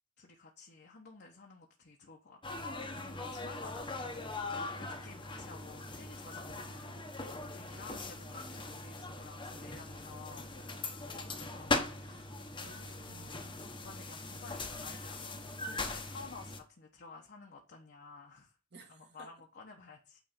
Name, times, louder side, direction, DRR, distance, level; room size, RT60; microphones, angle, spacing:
voice 1, 0.2-7.0 7.4-10.8 11.4-12.3 12.6-13.1 13.4-18.6 18.9-20.2, left 4 dB, 50° left, 0 dB, 1.0 m, -53 dB
sound 1, 2.4-16.6, left 2 dB, 25° left, 1.0 m, -40 dB
voice 2, 7.7-8.8 10.9-13.5 18.7-19.3, right 3 dB, 50° right, 2 dB, 2.0 m, -59 dB
8.9 x 3.4 x 5.2 m, 0.34 s
head